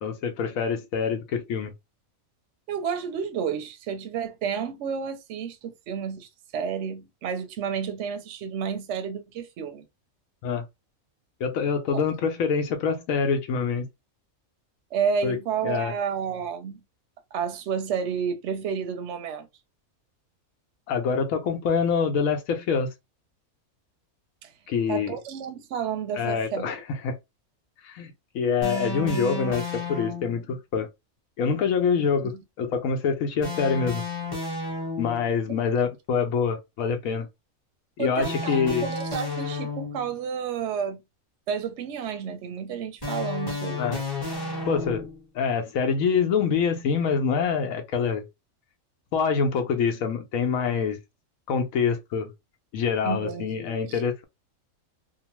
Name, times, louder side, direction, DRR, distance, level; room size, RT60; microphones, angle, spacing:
voice 1, 0.0-1.7 10.4-10.6 11.4-13.9 15.2-15.4 15.6-15.9 20.9-22.9 24.7-25.2 26.2-27.1 27.8-30.9 31.4-34.0 35.0-37.3 38.0-38.9 43.8-44.0 44.7-45.1 45.3-48.2 49.1-51.0 51.5-52.3 52.7-54.2, left 6 dB, 80° left, 1.0 m, -25 dB
voice 2, 2.7-9.9 11.9-12.0 14.9-16.8 17.3-19.5 24.4-24.5 24.9-26.8 32.0-32.1 32.3-32.4 35.5-35.6 38.0-41.0 41.5-44.0 53.0-54.0, right 7 dB, 65° right, 0.8 m, -31 dB
sound 1, 28.6-30.4 33.4-35.3 38.2-40.2 43.0-45.2, left 2 dB, 20° left, 0.9 m, -32 dB
2.8 x 2.1 x 2.9 m
omnidirectional pair, 1.4 m